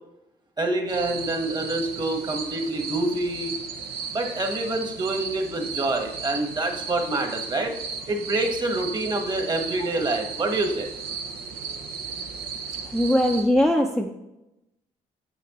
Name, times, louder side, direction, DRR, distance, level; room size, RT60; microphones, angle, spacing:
voice 1, 0.6-3.5 4.1-7.7 8.1-10.9, right 2 dB, 30° right, 4 dB, 1.3 m, -26 dB
sound 1, 0.9-13.4, right 6 dB, 85° right, 0.7 m, -35 dB
voice 2, 12.9-14.1, equal, ahead, 2 dB, 0.5 m, -20 dB
7.8 x 6.0 x 3.0 m, 0.91 s
supercardioid pair, 70°, 16 cm